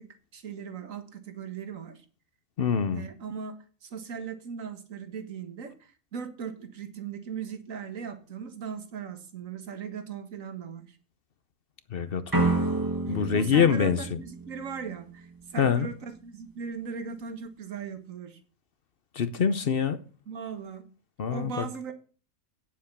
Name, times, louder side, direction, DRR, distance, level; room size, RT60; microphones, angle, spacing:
voice 1, 0.0-2.0 2.9-11.0 13.1-18.4 20.3-20.9 21.3-21.9, right 6 dB, 65° right, 1.9 m, -38 dB
voice 2, 2.6-3.0 11.9-12.5 13.1-14.2 15.6-15.9 19.1-20.0 21.2-21.7, left 7 dB, 50° left, 0.8 m, -25 dB
sound 1, 12.3-15.2, right 3 dB, 15° right, 1.7 m, -29 dB
9.5 x 7.4 x 6.8 m
omnidirectional pair, 1.5 m